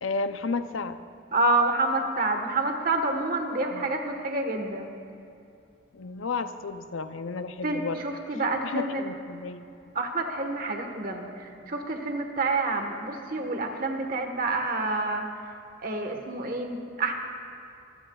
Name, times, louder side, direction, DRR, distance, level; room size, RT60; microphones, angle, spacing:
voice 1, 0.0-1.0 3.7-3.8 5.9-8.0 8.6-9.7, left 4 dB, 80° left, 10 dB, 0.6 m, -32 dB
voice 2, 1.3-4.9 7.6-9.0 9.9-15.3 15.8-17.2, right 2 dB, 45° right, 4 dB, 1.4 m, -28 dB
25.0 x 15.0 x 2.4 m, 2.5 s
head